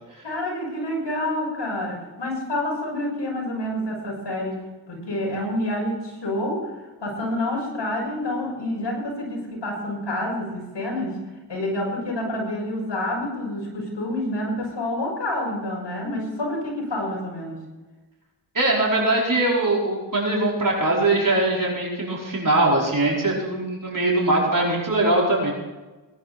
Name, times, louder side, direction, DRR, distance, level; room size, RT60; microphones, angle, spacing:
voice 1, 0.2-6.7 7.0-11.2 11.5-17.6, left 1 dB, 70° left, 0 dB, 6.2 m, -28 dB
voice 2, 18.5-25.5, right 2 dB, 45° right, -3 dB, 5.0 m, -21 dB
19.0 x 10.5 x 4.4 m, 1.2 s
cardioid pair, 40°, 44 cm